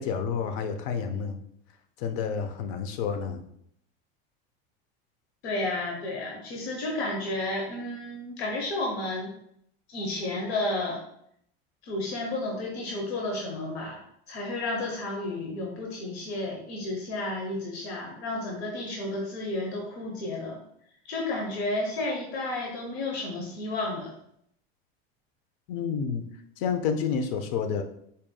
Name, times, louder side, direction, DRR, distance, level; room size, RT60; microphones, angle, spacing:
voice 1, 0.0-1.4 2.0-3.4 25.7-26.3 26.6-27.8, left 6 dB, 65° left, 7 dB, 0.7 m, -29 dB
voice 2, 5.4-9.3 9.9-11.0 11.8-14.0 14.3-20.6 21.1-24.1, left 2 dB, 90° left, -1 dB, 0.9 m, -32 dB
4.0 x 3.7 x 2.3 m, 0.70 s
supercardioid pair, 105°, 31 cm